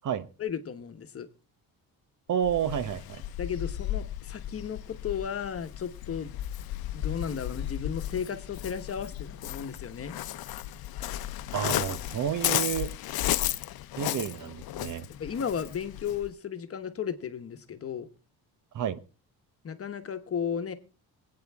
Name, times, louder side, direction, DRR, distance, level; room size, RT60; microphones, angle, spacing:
voice 1, 0.4-1.3 3.4-6.3 6.9-10.1 15.2-18.1 19.6-20.7, left 7 dB, 40° left, 1.2 m, -34 dB
voice 2, 2.3-3.2 11.5-12.9 14.0-15.1 18.7-19.0, right 9 dB, 55° right, 1.0 m, -30 dB
Waves surf, 2.4-16.3, left 13 dB, 75° left, 0.8 m, -34 dB
25.5 x 8.8 x 3.5 m
cardioid pair, 145°, 37 cm